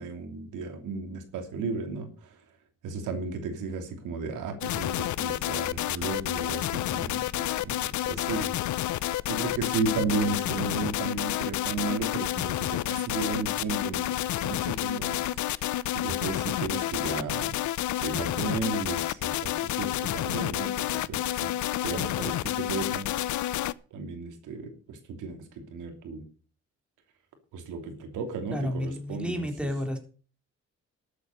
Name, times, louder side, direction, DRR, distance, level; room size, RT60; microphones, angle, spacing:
voice 1, 0.0-2.4 2.8-8.5 9.3-17.6 18.0-21.5 21.8-23.1 23.3-23.4 23.9-26.2 27.5-29.5, right 4 dB, 85° right, 5 dB, 2.9 m, -34 dB
sound 1, 4.6-23.7, left 14 dB, 75° left, 0.7 m, -30 dB
voice 2, 28.5-30.0, equal, 5° right, 3 dB, 3.7 m, -31 dB
12.5 x 8.4 x 6.6 m, 0.39 s
cardioid pair, 90°, 30 cm